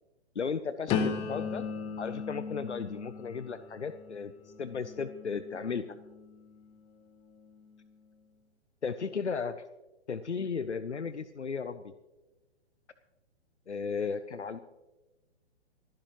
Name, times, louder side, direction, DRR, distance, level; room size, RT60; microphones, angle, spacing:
voice 1, 0.4-1.6 2.0-6.0 8.8-9.6 10.1-11.9 13.7-14.6, left 5 dB, 90° left, 13 dB, 0.7 m, -35 dB
sound 1, 0.9-6.7 7.3-7.7, left 6 dB, 15° left, 0.9 m, -37 dB
28.5 x 10.5 x 3.0 m, 1.1 s
figure-of-eight pair, 125°, 34 cm